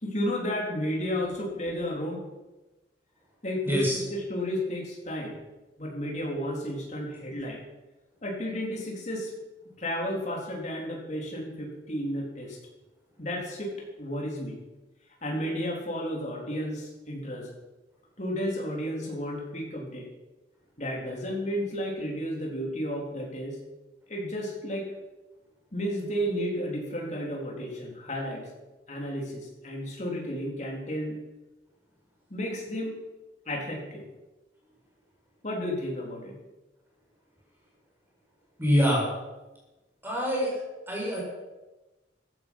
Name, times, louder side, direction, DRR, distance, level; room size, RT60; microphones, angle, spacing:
voice 1, 0.0-2.2 3.4-5.4 5.8-7.6 8.2-9.3 9.8-12.6 13.2-13.7 14.0-14.6 15.2-17.5 18.2-20.1 20.8-23.6 24.1-24.9 25.7-28.5 28.9-31.2 32.3-33.0 33.5-34.1 35.4-36.4, equal, 40° left, -1 dB, 3.7 m, -32 dB
voice 2, 3.6-4.0 38.6-39.0 40.0-41.2, equal, 10° right, -4 dB, 5.6 m, -25 dB
15.0 x 13.0 x 5.6 m, 1.1 s
head